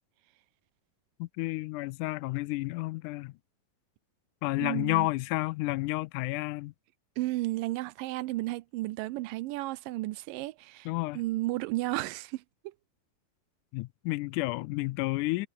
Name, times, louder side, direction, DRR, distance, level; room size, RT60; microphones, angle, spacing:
voice 1, 1.2-3.3 4.4-6.7 10.9-11.2 13.7-15.5, left 21 dB, 80° left, 1.9 m, -31 dB
voice 2, 4.6-5.1 7.2-10.9 11.1-12.7, right 19 dB, 85° right, 2.3 m, -33 dB
omnidirectional pair, 3.9 m